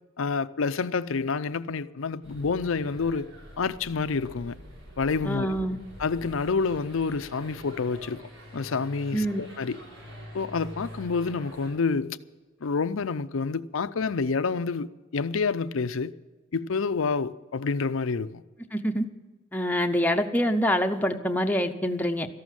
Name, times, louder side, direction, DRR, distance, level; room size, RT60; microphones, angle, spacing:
voice 1, 0.2-3.3 3.6-4.6 5.0-5.5 6.0-8.2 8.5-9.8 10.3-12.2 12.6-16.1 16.5-18.4, left 4 dB, 75° left, 0.5 m, -28 dB
sound 1, 2.2-11.7, equal, 75° right, 6.1 m, -45 dB
voice 2, 5.2-5.8 9.1-9.4 18.7-19.1 19.5-22.3, equal, 10° left, 0.7 m, -25 dB
14.0 x 11.5 x 7.4 m
head